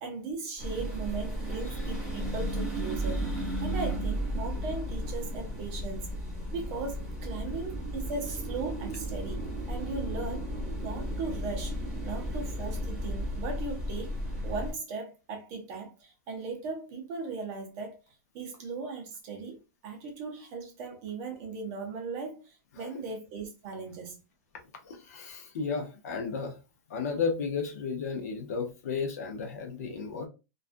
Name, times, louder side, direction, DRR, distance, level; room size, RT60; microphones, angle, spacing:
voice 1, 0.0-6.1 6.5-10.5 10.8-11.8 12.0-14.1 14.4-18.0 18.3-24.2, right 4 dB, 25° right, 0.6 m, -38 dB
sound 1, 0.6-14.7, equal, 5° right, 1.1 m, -34 dB
voice 2, 24.8-26.6 26.9-30.3, left 5 dB, 60° left, 0.7 m, -33 dB
2.4 x 2.3 x 2.5 m
supercardioid pair, 175°, 10 cm